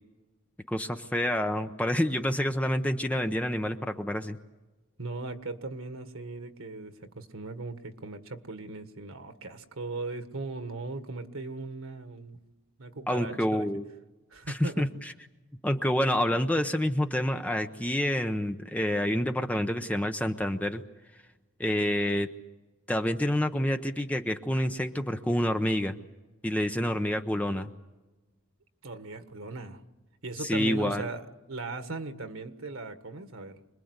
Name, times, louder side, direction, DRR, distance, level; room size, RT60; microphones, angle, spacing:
voice 1, 0.7-4.4 13.1-13.8 14.5-15.1 15.6-20.8 21.6-22.3 22.9-25.9 26.4-27.7 30.4-31.1, left 1 dB, 5° left, 6 dB, 0.8 m, -28 dB
voice 2, 5.0-12.4 12.8-13.6 14.3-14.8 28.8-29.8 30.2-33.6, right 3 dB, 85° right, 8 dB, 1.7 m, -38 dB
26.5 x 21.0 x 8.1 m, 1.1 s
head